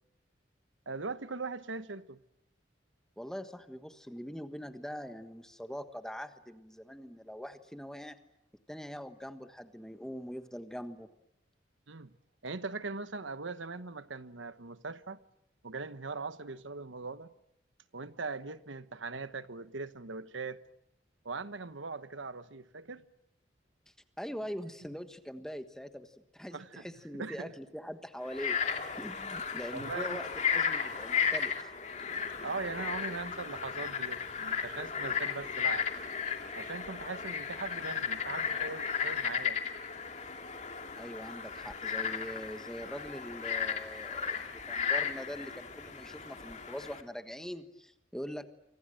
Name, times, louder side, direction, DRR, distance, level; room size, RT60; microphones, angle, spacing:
voice 1, 0.9-2.2 11.9-12.1 12.4-15.2 15.6-17.3 17.9-20.6 21.2-23.0 26.5-26.9 27.1-27.5 29.7-30.2 32.4-35.9 36.5-39.6, right 4 dB, 80° right, 1.2 m, -40 dB
voice 2, 3.2-8.2 8.7-11.1 24.2-28.6 28.9-31.7 41.0-48.5, equal, 5° left, 1.4 m, -43 dB
Frog, 28.3-47.0, left 7 dB, 35° left, 2.6 m, -35 dB
28.0 x 25.0 x 7.8 m
head